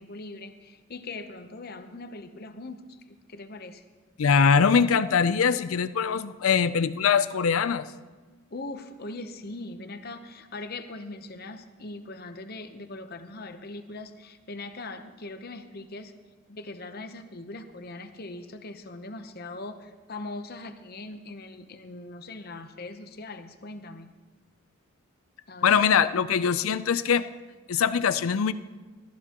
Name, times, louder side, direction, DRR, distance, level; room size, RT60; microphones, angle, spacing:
voice 1, 0.0-3.8 8.5-16.1 16.5-24.1 25.5-25.7, left 2 dB, 45° left, 8 dB, 0.8 m, -40 dB
voice 2, 4.2-7.9 25.6-27.2 27.7-28.5, left 6 dB, 80° left, 14 dB, 0.5 m, -22 dB
20.0 x 13.5 x 3.0 m, 1.3 s
head